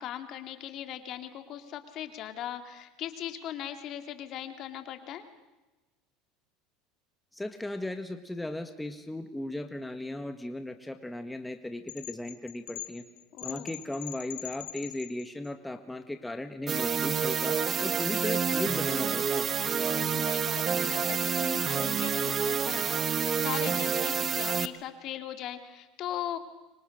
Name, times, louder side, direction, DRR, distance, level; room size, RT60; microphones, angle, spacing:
voice 1, 0.0-5.3 13.3-13.7 19.9-26.4, left 11 dB, 50° left, 8 dB, 2.6 m, -39 dB
voice 2, 7.3-13.0 13.4-19.5, left 1 dB, 5° left, 7 dB, 1.6 m, -37 dB
sound 1, 11.9-15.5, left 15 dB, 85° left, 1.2 m, -42 dB
sound 2, 16.7-24.7, right 7 dB, 35° right, 1.1 m, -28 dB
30.0 x 25.0 x 6.6 m, 1.1 s
supercardioid pair, 110°, 0 cm